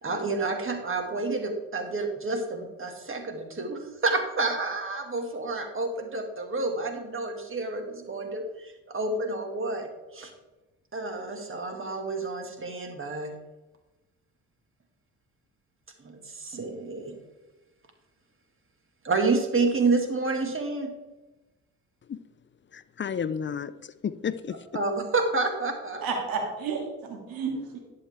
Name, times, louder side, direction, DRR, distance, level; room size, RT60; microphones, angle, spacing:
voice 1, 0.0-9.9 10.1-10.3 10.9-13.3 16.0-17.2 19.0-20.9 24.7-26.1, right 3 dB, 35° right, 4 dB, 2.3 m, -29 dB
voice 2, 22.7-24.6, left 7 dB, 35° left, 14 dB, 0.6 m, -32 dB
voice 3, 26.0-27.8, right 5 dB, 75° right, 2 dB, 2.4 m, -31 dB
11.0 x 7.8 x 3.7 m, 1.1 s
supercardioid pair, 60°, 35 cm